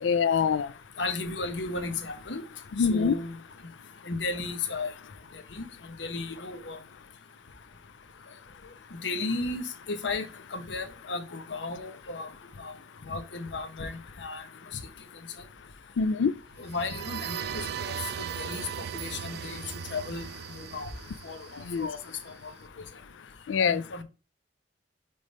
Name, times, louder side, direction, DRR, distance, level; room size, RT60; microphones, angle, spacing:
voice 1, 0.0-0.7 2.8-3.1 16.0-16.3 21.7-21.9 23.5-23.8, left 6 dB, 90° left, 0.4 m, -24 dB
voice 2, 1.0-2.4 2.8-3.3 4.0-4.9 5.3-5.7 6.0-6.8 8.9-12.3 12.6-12.8 13.0-14.4 16.6-18.7 18.9-19.6 19.9-20.3 20.5-20.9 21.2-22.0 22.3-22.5 23.6-24.0, left 3 dB, 70° left, 1.0 m, -34 dB
sound 1, 16.6-22.3, right 8 dB, 60° right, 0.4 m, -38 dB
5.2 x 3.7 x 5.3 m
head